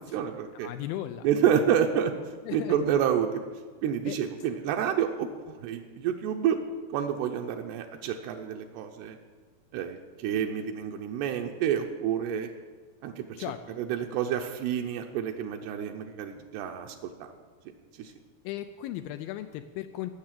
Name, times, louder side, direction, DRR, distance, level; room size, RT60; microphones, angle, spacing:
voice 1, 0.0-0.7 1.2-2.1 2.5-3.5 3.8-6.6 6.9-9.2 9.7-12.5 13.0-13.4 13.8-17.3 18.0-18.1, right 9 dB, 85° right, 3 dB, 2.8 m, -29 dB
voice 2, 0.6-1.3 2.5-2.8 4.0-4.2 13.4-13.6 18.1-18.2 18.4-20.1, left 13 dB, 85° left, 8 dB, 2.1 m, -36 dB
17.0 x 6.6 x 7.4 m, 1.5 s
omnidirectional pair, 4.7 m